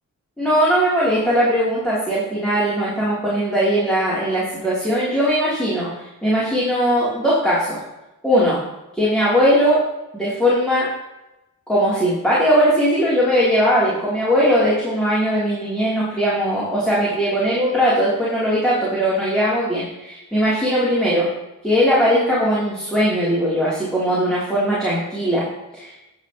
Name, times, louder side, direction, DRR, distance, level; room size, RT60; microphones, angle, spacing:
voice 1, 0.4-5.9 6.2-7.8 8.2-8.6 8.9-9.8 10.1-10.9 11.7-21.3 21.6-25.5 25.7-25.9, equal, ahead, -9 dB, 3.4 m, -19 dB
14.5 x 6.4 x 3.1 m, 0.96 s
cardioid pair, 55°, 34 cm